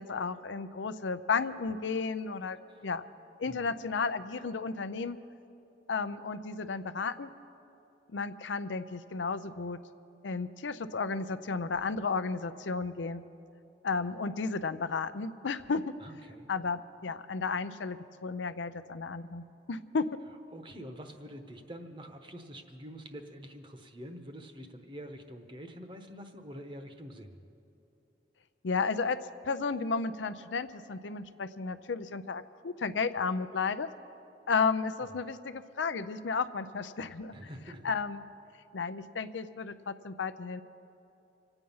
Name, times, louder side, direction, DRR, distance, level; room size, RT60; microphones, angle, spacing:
voice 1, 0.0-3.0 3.4-5.2 5.9-7.3 8.1-9.8 10.2-13.2 13.8-15.9 16.5-20.1 28.6-29.2 29.4-33.9 34.5-37.3 37.8-38.2 38.7-40.6, left 4 dB, 90° left, 12 dB, 0.6 m, -33 dB
voice 2, 16.0-16.5 20.5-27.4 35.0-35.2 37.3-37.9, equal, 25° right, 6 dB, 1.0 m, -46 dB
25.5 x 9.0 x 5.5 m, 2.8 s
head